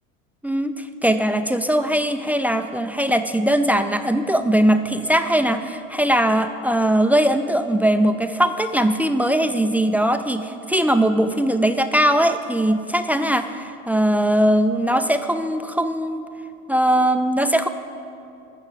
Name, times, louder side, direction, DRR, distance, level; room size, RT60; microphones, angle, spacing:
voice 1, 0.4-16.2 16.7-17.7, right 1 dB, 5° right, 9 dB, 0.4 m, -20 dB
14.5 x 6.1 x 7.3 m, 2.6 s
hypercardioid pair, 75°, 39 cm